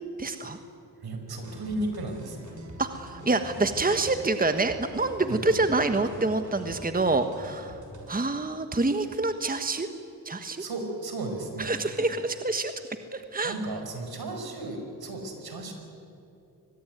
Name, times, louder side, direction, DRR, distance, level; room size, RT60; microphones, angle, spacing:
voice 1, 0.2-0.6 2.8-7.8 8.1-9.9 10.2-10.6 11.6-12.7 13.1-13.5, right 3 dB, 20° right, 8 dB, 1.5 m, -27 dB
voice 2, 1.0-2.5 5.3-5.5 10.6-11.7 13.4-15.7, right 2 dB, 70° right, 5 dB, 5.3 m, -34 dB
sound 1, 1.4-8.1, equal, 50° right, 6.9 m, -44 dB
24.0 x 20.5 x 9.2 m, 2.8 s
cardioid pair, 55°, 39 cm